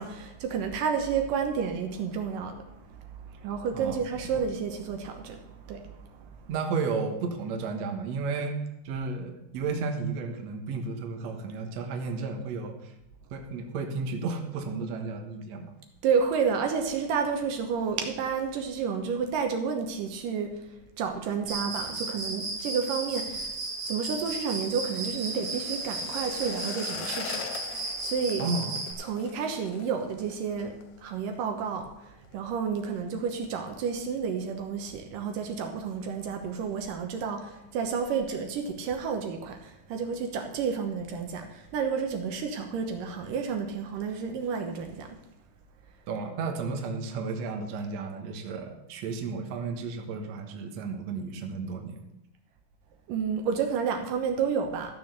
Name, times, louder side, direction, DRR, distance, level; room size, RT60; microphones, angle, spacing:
voice 1, 0.0-3.0 3.4-6.3 16.0-20.5 21.0-23.5 23.9-27.5 28.0-28.5 29.0-30.7 31.0-45.2 53.1-54.9, right 6 dB, 75° right, 4 dB, 2.6 m, -30 dB
voice 2, 6.5-12.9 13.3-15.7 28.4-28.8 46.1-52.0, right 4 dB, 60° right, 4 dB, 2.2 m, -33 dB
Cricket, 21.5-28.9, right 2 dB, 45° right, 2.8 m, -34 dB
sound 1, 22.7-31.8 32.0-32.4 32.7-33.2 33.6-33.7, left 10 dB, 80° left, 2.4 m, -44 dB
14.0 x 6.9 x 6.6 m, 0.88 s
omnidirectional pair, 4.0 m